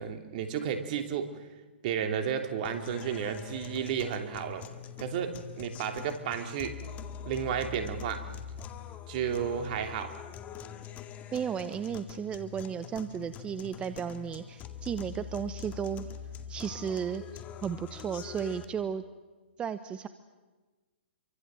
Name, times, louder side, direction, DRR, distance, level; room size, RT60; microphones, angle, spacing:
voice 1, 0.0-1.3 1.8-4.7 5.0-6.8 7.2-8.3 9.1-10.2, right 8 dB, 45° right, 7 dB, 3.0 m, -32 dB
sound 1, 2.6-18.6, left 8 dB, 25° left, 2.1 m, -44 dB
voice 2, 11.3-16.1 16.5-19.0 19.6-20.1, right 7 dB, 15° right, 12 dB, 1.0 m, -34 dB
28.0 x 24.5 x 7.7 m, 1.3 s
hypercardioid pair, 130°, 6 cm